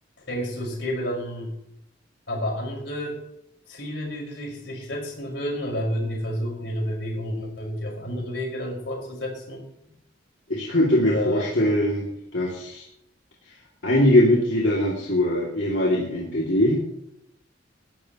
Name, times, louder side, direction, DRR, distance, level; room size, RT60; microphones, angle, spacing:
voice 1, 0.3-1.5 2.3-3.2 3.7-9.6 11.0-11.5, equal, 70° left, -1 dB, 5.4 m, -30 dB
voice 2, 10.5-12.8 13.8-16.8, left 1 dB, 90° left, -4 dB, 2.7 m, -21 dB
19.0 x 12.0 x 3.1 m, 0.78 s
head